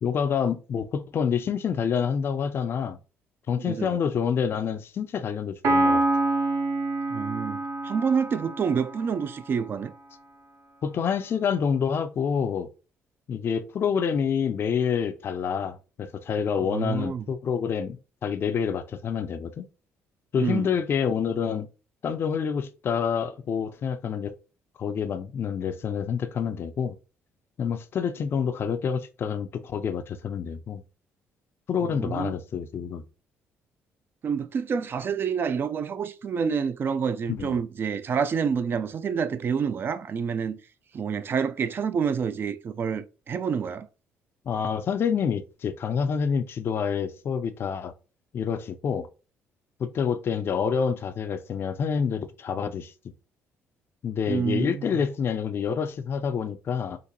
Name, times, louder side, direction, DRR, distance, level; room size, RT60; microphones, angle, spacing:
voice 1, 0.0-3.0 3.5-6.0 10.8-12.7 13.3-19.7 20.3-21.7 22.0-24.3 24.8-26.9 27.6-30.8 31.7-33.0 37.3-37.6 44.5-47.9 48.3-49.1 49.8-52.9 54.0-57.0, left 7 dB, 50° left, 0.4 m, -27 dB
voice 2, 3.5-3.9 7.1-7.6 7.8-9.9 16.6-17.2 20.4-20.7 31.8-32.3 34.2-40.6 40.9-43.9 54.3-55.0, right 6 dB, 45° right, 0.4 m, -28 dB
Piano, 5.6-9.2, right 2 dB, 70° right, 1.0 m, -26 dB
3.9 x 2.5 x 2.7 m
cardioid pair, 85°, 5 cm